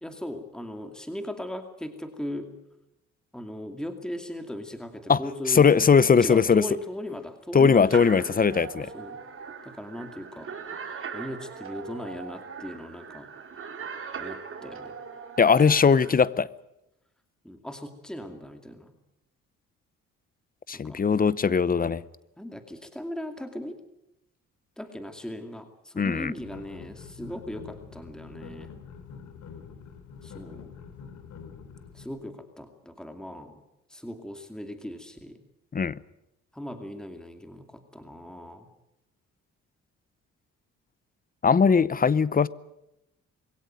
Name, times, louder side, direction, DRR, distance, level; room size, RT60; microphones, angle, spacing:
voice 1, 0.0-2.5 3.3-5.7 6.2-8.6 8.9-9.2 9.6-10.5 11.1-13.3 14.2-14.9 17.4-18.9 20.7-21.0 22.4-23.8 24.8-28.7 30.2-30.7 31.9-33.6 33.9-35.4 36.5-38.7, left 1 dB, ahead, 2.4 m, -38 dB
voice 2, 5.5-6.6 7.5-8.9 15.4-16.5 20.7-22.0 26.0-26.3 35.7-36.0 41.4-42.5, left 6 dB, 30° left, 0.7 m, -20 dB
sound 1, 7.9-16.1, right 6 dB, 45° right, 4.4 m, -40 dB
sound 2, 26.4-32.1, left 6 dB, 70° left, 3.2 m, -45 dB
22.0 x 17.0 x 9.2 m
cardioid pair, 90°, 30 cm